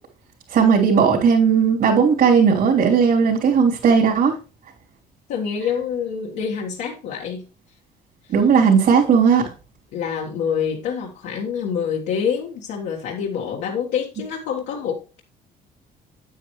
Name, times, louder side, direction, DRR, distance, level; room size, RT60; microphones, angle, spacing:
voice 1, 0.5-4.3 8.3-9.4, right 6 dB, 65° right, -5 dB, 3.1 m, -16 dB
voice 2, 5.3-7.4 8.2-8.3 9.9-15.2, left 7 dB, 85° left, -2 dB, 1.6 m, -26 dB
9.1 x 8.9 x 3.2 m, 0.32 s
cardioid pair, 110°, 17 cm